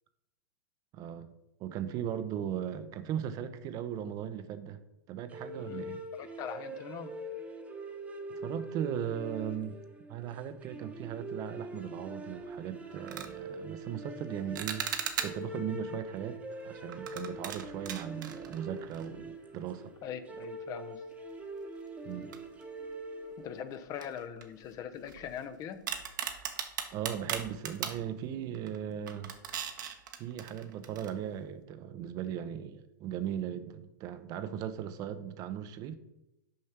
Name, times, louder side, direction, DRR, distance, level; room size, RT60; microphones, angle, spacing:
voice 1, 0.9-1.3 1.6-4.8 5.1-6.0 8.4-9.7 10.1-14.8 15.2-16.4 16.6-19.9 22.0-22.4 26.9-29.3 30.2-35.9, right 9 dB, 35° right, 11 dB, 0.7 m, -38 dB
sound 1, 5.3-23.8, right 1 dB, 10° right, 1.1 m, -43 dB
voice 2, 6.2-7.2 20.0-21.0 23.4-25.9, left 8 dB, 30° left, 10 dB, 0.7 m, -41 dB
sound 2, 12.3-12.5 13.0-13.3 14.6-15.6 16.9-19.3 19.6-19.7 20.4-20.5 22.3-23.0 23.3-23.4 24.0-25.4 25.9-28.0 28.5-28.8 29.1-31.1, right 8 dB, 65° right, 1.1 m, -38 dB
6.5 x 5.4 x 5.9 m, 0.91 s
hypercardioid pair, 115°, 11 cm